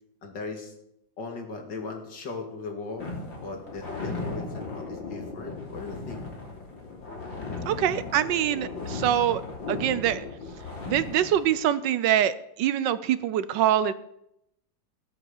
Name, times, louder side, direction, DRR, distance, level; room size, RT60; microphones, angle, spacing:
voice 1, 0.2-0.7 1.2-3.1 3.4-6.3, left 3 dB, 65° left, 3 dB, 2.8 m, -38 dB
sound 1, 3.0-11.5, left 3 dB, 85° left, 3.9 m, -36 dB
voice 2, 7.7-9.4 9.7-10.3 10.9-13.9, right 11 dB, 75° right, 15 dB, 1.3 m, -24 dB
15.5 x 7.9 x 7.2 m, 0.79 s
omnidirectional pair, 2.0 m